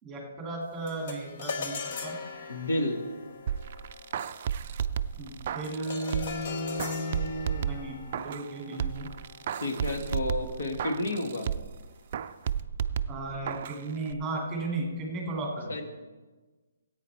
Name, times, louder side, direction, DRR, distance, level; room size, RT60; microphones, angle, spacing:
voice 1, 0.0-2.2 5.2-9.1 13.1-15.8, right 1 dB, 10° right, 0 dB, 2.4 m, -35 dB
sound 1, 0.9-10.4, left 4 dB, 40° left, 1.2 m, -41 dB
voice 2, 2.5-3.0 9.6-11.5 15.7-15.8, left 2 dB, 70° left, 4 dB, 1.6 m, -30 dB
sound 2, 3.5-6.5 6.8-8.5 8.8-11.8 12.1-13.8 14.1-14.2, right 8 dB, 40° right, 0.4 m, -33 dB
14.0 x 8.7 x 4.5 m, 1.3 s
hypercardioid pair, 160°, 0 cm